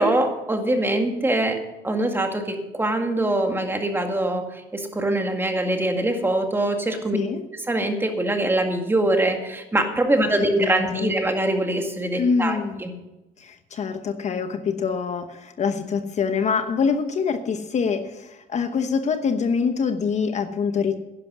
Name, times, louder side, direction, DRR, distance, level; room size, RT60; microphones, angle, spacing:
voice 1, 0.0-7.2 7.5-12.9, right 1 dB, 15° right, 4 dB, 2.0 m, -23 dB
voice 2, 7.1-7.4 10.2-10.3 10.6-11.1 12.2-12.8 13.4-20.9, left 5 dB, 45° left, 8 dB, 1.0 m, -25 dB
11.0 x 10.5 x 6.2 m, 1.0 s
cardioid pair, 110°, 17 cm